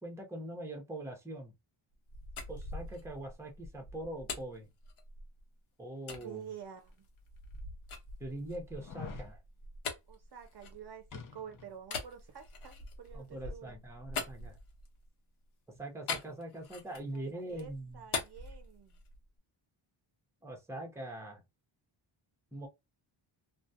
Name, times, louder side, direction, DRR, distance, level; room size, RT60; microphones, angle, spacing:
voice 1, 0.0-1.5 2.5-4.7 5.8-6.4 8.2-9.4 13.1-14.5 15.8-18.0 20.4-21.4 22.5-22.7, right 1 dB, 5° right, 0.8 m, -42 dB
sound 1, 1.9-5.4 6.1-6.3 6.8-11.2 11.8-15.1 16.1-17.2 17.5-19.3, left 4 dB, 75° left, 0.9 m, -43 dB
voice 2, 6.1-7.1 10.1-13.7 16.9-19.0, right 8 dB, 50° right, 0.6 m, -49 dB
sound 2, 6.8-6.9 7.5-7.6 8.7-9.3 11.1-11.8 12.1-12.2, left 6 dB, 40° left, 0.6 m, -46 dB
2.3 x 2.2 x 2.7 m
wide cardioid pair, 115°, 50 cm